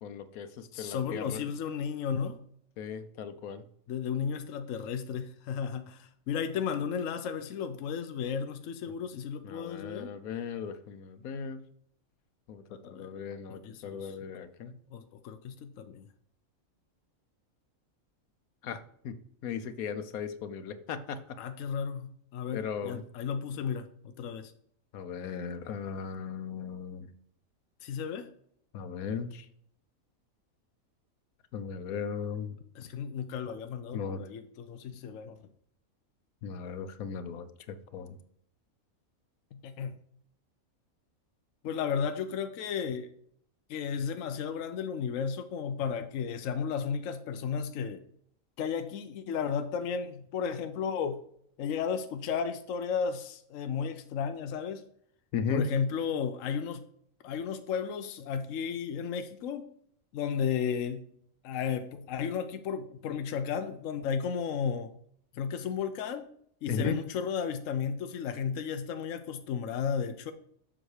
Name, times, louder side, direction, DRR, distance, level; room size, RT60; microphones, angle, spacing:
voice 1, 0.0-1.4 2.8-3.7 9.4-11.6 12.5-14.8 18.6-19.1 19.4-21.2 22.5-23.0 24.9-27.1 28.7-29.5 31.5-32.6 33.9-34.2 36.4-38.2 55.3-55.7 66.7-67.0, left 6 dB, 90° left, 11 dB, 1.2 m, -36 dB
voice 2, 0.7-2.4 3.9-10.1 12.8-13.1 13.5-14.2 14.9-16.1 21.4-24.5 27.8-28.3 32.7-35.4 39.5-40.0 41.6-43.1 43.7-48.0 48.6-51.2 51.6-54.8 55.5-56.8 57.2-59.7 60.1-61.1 61.4-64.9 65.3-66.3 66.6-70.3, left 7 dB, 70° left, 8 dB, 1.0 m, -34 dB
7.6 x 6.0 x 4.9 m, 0.66 s
omnidirectional pair, 1.5 m